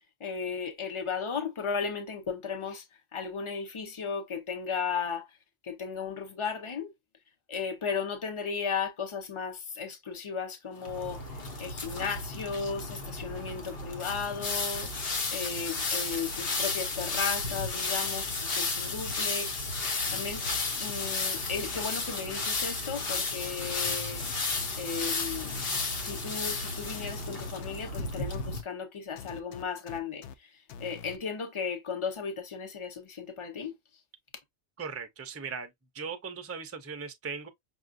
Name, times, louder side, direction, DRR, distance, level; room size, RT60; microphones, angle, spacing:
voice 1, 0.2-2.8 3.1-5.3 5.6-6.9 7.5-20.5 20.8-24.3 24.8-25.6 26.0-30.5 30.8-33.7, left 6 dB, 30° left, 0.8 m, -35 dB
sound 1, 10.8-28.6, left 3 dB, 55° left, 1.1 m, -33 dB
sound 2, 23.6-24.7 25.4-26.6 26.9-28.5 29.2-30.3 30.7-31.2, left 7 dB, 75° left, 0.9 m, -45 dB
voice 2, 34.8-35.7 35.9-37.5, right 5 dB, 20° right, 0.4 m, -38 dB
5.8 x 2.4 x 2.4 m
omnidirectional pair, 1.2 m